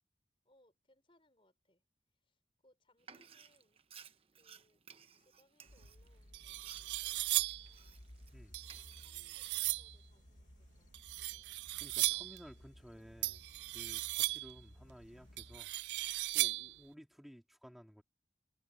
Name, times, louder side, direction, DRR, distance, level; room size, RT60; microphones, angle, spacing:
voice 1, 0.4-1.8 2.1-3.8 4.4-4.8 5.2-8.0 8.6-11.5 12.9-13.2 14.1-14.4 16.5-16.8, left 1 dB, 30° left, 5.4 m, -73 dB
Frying (food), 3.0-8.3 8.6-9.5, right 7 dB, 30° right, 1.0 m, -58 dB
sound 1, 5.7-15.6, equal, 45° left, 1.8 m, -58 dB
sound 2, 5.8-5.9 6.3-7.7 8.5-9.9 10.9-12.4 13.2-14.6 15.4-16.8, right 19 dB, 75° right, 0.3 m, -37 dB
voice 2, 11.8-13.4 13.7-15.7 16.3-18.0, equal, ahead, 2.8 m, -55 dB
head